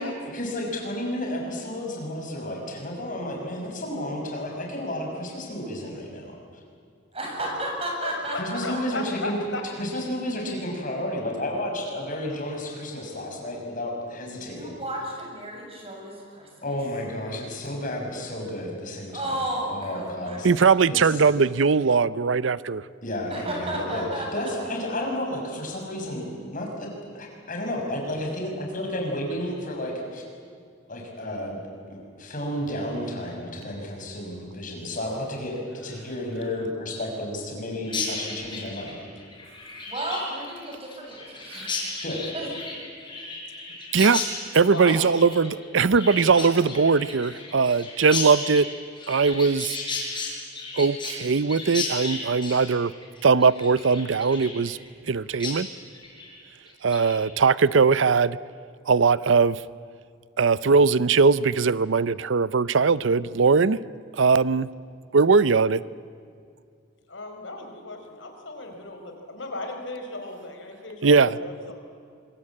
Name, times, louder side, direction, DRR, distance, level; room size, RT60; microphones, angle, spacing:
voice 1, 0.0-6.3 8.3-9.4 9.8-14.8 16.6-19.3 19.7-20.5 20.9-21.2 23.0-30.2 30.9-31.6 31.9-39.0 42.0-42.2, left 1 dB, 45° left, 1 dB, 6.3 m, -32 dB
voice 2, 7.1-8.8 14.4-16.8 19.1-20.4 23.3-24.7 39.9-41.9 42.3-42.5, right 1 dB, 30° right, 0 dB, 7.0 m, -33 dB
voice 3, 8.0-9.6 36.0-36.4 44.7-45.7 46.3-46.5 67.1-71.7, left 2 dB, 75° left, 4 dB, 4.5 m, -36 dB
voice 4, 20.4-22.8 41.5-41.7 43.9-44.2 44.5-48.7 49.1-49.8 50.7-52.9 53.2-54.8 55.1-55.7 56.8-58.4 58.9-59.6 60.4-63.8 64.1-64.7 65.1-65.8 71.0-71.3, right 5 dB, 80° right, 18 dB, 0.6 m, -20 dB
Chirp tweet, 37.8-55.1 55.4-55.6 55.9-56.3 56.7-57.1, left 4 dB, 25° left, 6.5 m, -34 dB
25.5 x 23.0 x 8.7 m, 2.3 s
head